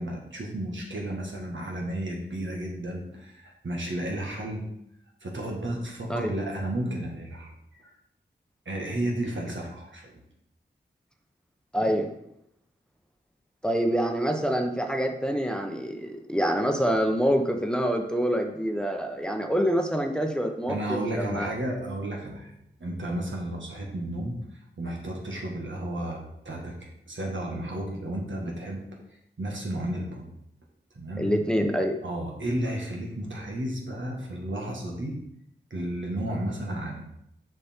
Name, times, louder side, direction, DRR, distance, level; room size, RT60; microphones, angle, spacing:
voice 1, 0.0-4.7 5.2-7.9 8.6-10.1 20.7-22.5 22.8-24.4 24.8-28.8 29.4-30.3 30.9-31.3 32.0-35.2 35.7-37.1, right 1 dB, 75° right, -1 dB, 1.7 m, -33 dB
voice 2, 11.7-12.1 13.6-21.5 31.2-31.9, equal, 5° left, 4 dB, 0.9 m, -26 dB
6.7 x 5.3 x 4.5 m, 0.77 s
cardioid pair, 45°, 20 cm